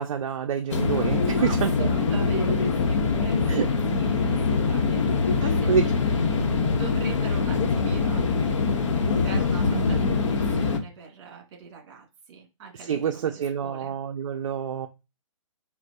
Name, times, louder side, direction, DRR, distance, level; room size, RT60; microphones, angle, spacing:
voice 1, 0.0-1.9 3.5-3.7 5.7-5.9 12.8-14.9, right 7 dB, 60° right, 0.4 m, -27 dB
sound 1, 0.7-10.8, left 4 dB, 60° left, 0.7 m, -23 dB
voice 2, 1.4-3.4 3.7-5.7 6.7-8.7 9.2-13.9, right 5 dB, 40° right, 1.6 m, -43 dB
4.4 x 2.0 x 2.6 m
hypercardioid pair, 150°, 18 cm